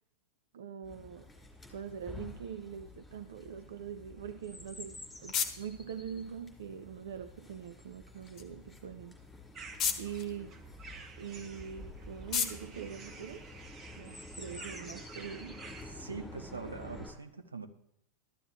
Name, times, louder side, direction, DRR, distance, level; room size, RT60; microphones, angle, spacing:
voice 1, 0.5-1.3 1.7-9.1 10.0-10.5 11.2-13.5 14.0-15.6, right 8 dB, 60° right, 9 dB, 0.6 m, -43 dB
Chirp tweet, 0.8-17.1, left 2 dB, 10° left, 4.0 m, -50 dB
sound 1, 4.5-13.9, left 7 dB, 30° left, 1.3 m, -41 dB
sound 2, 9.5-16.4, right 4 dB, 25° right, 1.4 m, -51 dB
voice 2, 15.7-17.7, right 4 dB, 75° right, 7 dB, 1.0 m, -43 dB
14.0 x 12.5 x 3.1 m, 0.80 s
figure-of-eight pair, 90°, 0 cm